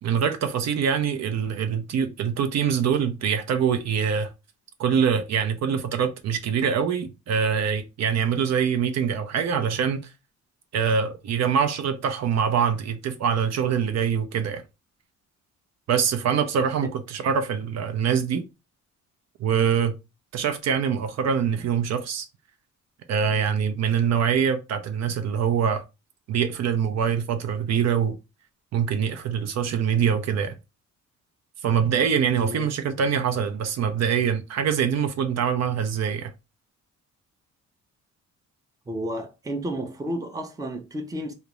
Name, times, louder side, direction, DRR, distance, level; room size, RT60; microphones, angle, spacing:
voice 1, 0.0-4.3 4.8-10.1 10.7-14.6 15.9-18.4 19.4-19.9 20.3-22.3 23.1-25.8 26.3-28.2 28.7-30.6 31.6-36.3, right 7 dB, 60° right, 0.5 m, -24 dB
voice 2, 38.9-41.3, right 1 dB, 10° right, 0.5 m, -32 dB
2.4 x 2.0 x 2.9 m
cardioid pair, 90°, 30 cm